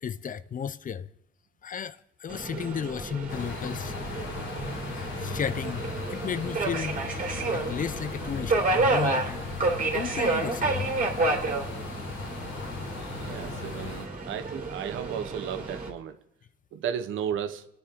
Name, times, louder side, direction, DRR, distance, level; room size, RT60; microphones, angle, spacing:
voice 1, 0.0-1.1 1.6-3.9 4.9-7.0 7.5-9.4 9.9-11.0, left 7 dB, 40° left, 0.6 m, -34 dB
Subway metro underground, 2.3-15.9, right 3 dB, 45° right, 3.3 m, -30 dB
sound 1, 3.3-14.1, left 6 dB, 80° left, 1.5 m, -38 dB
voice 2, 13.1-16.2 16.7-17.7, right 8 dB, 85° right, 1.1 m, -34 dB
24.0 x 9.8 x 3.8 m
cardioid pair, 90°, 20 cm